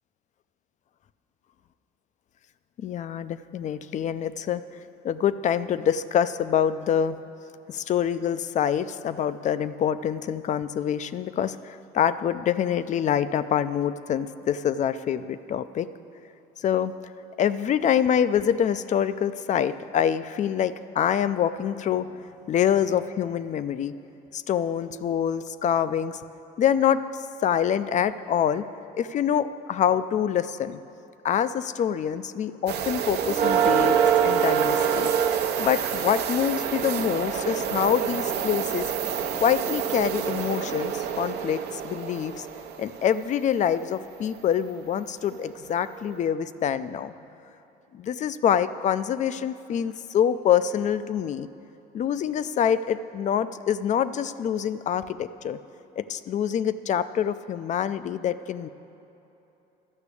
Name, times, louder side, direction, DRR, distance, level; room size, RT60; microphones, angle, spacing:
voice 1, 2.8-4.6 5.0-7.2 7.7-15.9 16.6-16.9 17.4-23.9 24.3-26.2 26.6-27.0 27.4-28.6 28.9-30.8 31.2-35.1 35.6-38.9 39.4-42.5 42.8-47.1 47.9-51.5 51.9-55.6 56.0-58.7, left 9 dB, 45° left, 14 dB, 0.4 m, -25 dB
sound 1, 32.7-43.3 45.3-45.4 46.0-46.1, right 8 dB, 75° right, 0.8 m, -26 dB
12.0 x 6.0 x 8.3 m, 3.0 s
cardioid pair, 110°, 17 cm